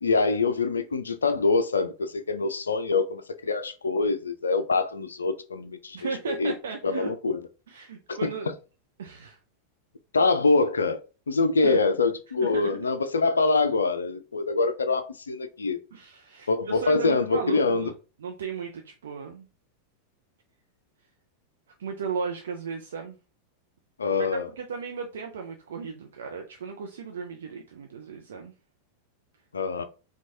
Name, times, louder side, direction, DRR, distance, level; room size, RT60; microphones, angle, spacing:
voice 1, 0.0-6.5 6.8-7.4 8.1-8.3 10.1-15.8 16.5-17.9 24.0-24.5 29.5-29.8, left 3 dB, 75° left, 0.4 m, -25 dB
voice 2, 5.9-7.1 7.7-8.5 9.0-9.4 11.6-11.8 12.4-12.9 15.9-17.9 18.2-19.5 21.8-23.2 24.2-24.3 24.5-28.5, right 5 dB, 65° right, 0.5 m, -35 dB
4.5 x 2.3 x 2.6 m
figure-of-eight pair, 90°, 0 cm